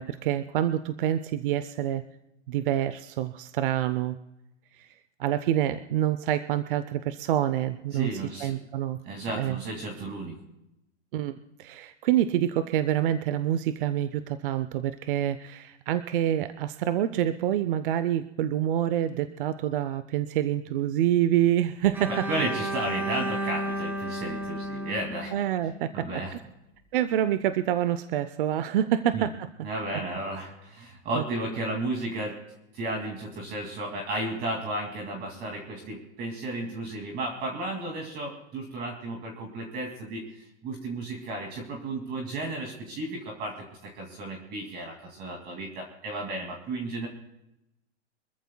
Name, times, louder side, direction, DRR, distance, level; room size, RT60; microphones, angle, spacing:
voice 1, 0.0-2.0 2.5-4.2 4.7-4.9 5.2-9.0 9.3-9.6 11.1-22.2 25.3-26.1 26.9-29.3 31.1-31.2, right 11 dB, 50° right, 12 dB, 0.7 m, -27 dB
voice 2, 7.9-8.6 9.0-10.4 22.1-25.3 25.9-26.3 29.1-29.3 29.6-32.4 32.7-47.1, right 2 dB, 25° right, 1 dB, 2.5 m, -33 dB
Bowed string instrument, 21.9-26.0, right 1 dB, 5° right, 0.8 m, -33 dB
25.5 x 14.0 x 2.3 m, 0.86 s
hypercardioid pair, 150°, 35 cm